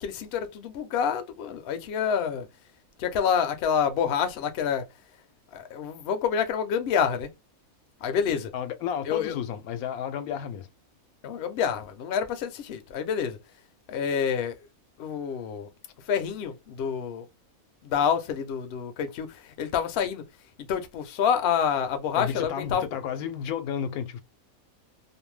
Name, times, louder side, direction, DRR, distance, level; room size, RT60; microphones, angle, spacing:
voice 1, 0.0-2.5 3.0-4.8 5.5-7.3 8.0-8.5 9.0-9.4 11.2-13.4 13.9-14.6 15.0-15.7 16.1-17.2 17.8-20.2 20.7-22.9, left 7 dB, 60° left, 0.7 m, -27 dB
voice 2, 8.5-10.7 22.2-24.2, left 8 dB, 90° left, 1.1 m, -32 dB
2.6 x 2.1 x 3.1 m
omnidirectional pair, 1.5 m